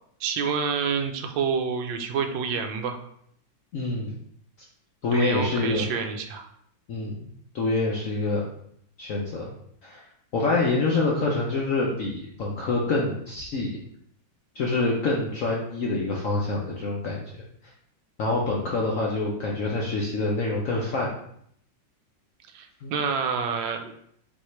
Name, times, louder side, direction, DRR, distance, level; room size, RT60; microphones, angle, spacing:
voice 1, 0.2-3.0 5.1-6.5 22.5-23.9, right 6 dB, 80° right, 6 dB, 1.3 m, -28 dB
voice 2, 3.7-4.2 5.0-5.9 6.9-7.3 7.5-8.5 9.0-9.5 9.8-10.0 10.3-13.7 14.5-17.4 18.2-21.1 22.8-22.9, left 3 dB, 65° left, -3 dB, 0.8 m, -26 dB
5.5 x 2.8 x 3.1 m, 0.69 s
omnidirectional pair, 2.1 m